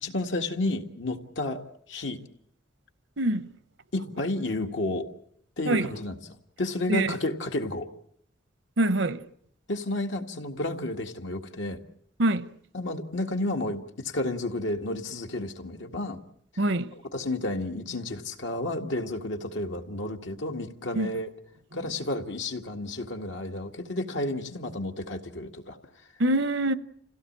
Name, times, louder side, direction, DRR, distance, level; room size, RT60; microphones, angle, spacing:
voice 1, 0.0-1.6 1.9-2.2 3.9-5.1 5.6-7.9 9.7-11.8 12.7-16.2 17.1-21.3 21.7-25.8, left 2 dB, 75° left, 2.0 m, -31 dB
voice 2, 3.2-3.5 5.7-5.9 6.9-7.1 8.8-9.2 12.2-12.4 16.6-16.9 20.9-21.1 26.2-26.7, right 1 dB, 75° right, 0.9 m, -24 dB
27.5 x 16.5 x 8.7 m
head